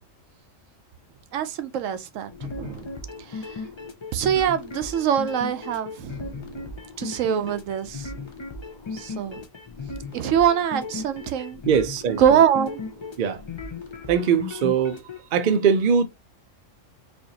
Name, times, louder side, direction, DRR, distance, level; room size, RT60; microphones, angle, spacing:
voice 1, 1.3-2.9 3.3-3.6 4.1-6.7 7.0-8.1 8.9-9.4 10.1-11.6 12.2-12.8, right 9 dB, 80° right, 1.0 m, -24 dB
sound 1, 2.3-15.2, left 4 dB, 50° left, 0.3 m, -36 dB
voice 2, 11.7-12.4 13.2-13.4 14.1-15.0 15.3-16.0, right 7 dB, 55° right, 0.6 m, -21 dB
4.5 x 2.6 x 2.7 m
omnidirectional pair, 1.4 m